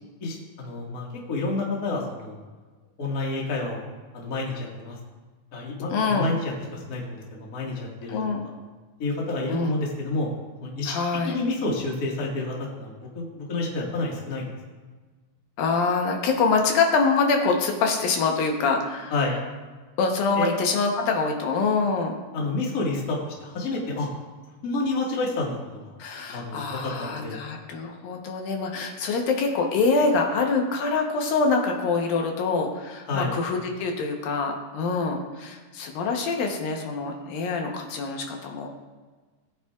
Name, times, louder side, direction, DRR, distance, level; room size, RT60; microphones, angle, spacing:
voice 1, 0.2-2.4 3.0-3.8 4.1-5.0 5.5-8.2 9.0-10.3 10.6-10.9 11.2-14.5 19.1-19.4 20.4-20.6 22.3-24.1 24.6-25.9 26.3-27.4 33.1-33.3, left 2 dB, 40° left, -2 dB, 1.4 m, -29 dB
voice 2, 5.9-6.3 8.1-8.4 9.5-9.7 10.9-11.4 15.6-19.1 20.0-22.1 26.0-38.7, left 4 dB, 75° left, 2 dB, 2.7 m, -25 dB
17.0 x 8.1 x 2.4 m, 1.3 s
omnidirectional pair, 4.2 m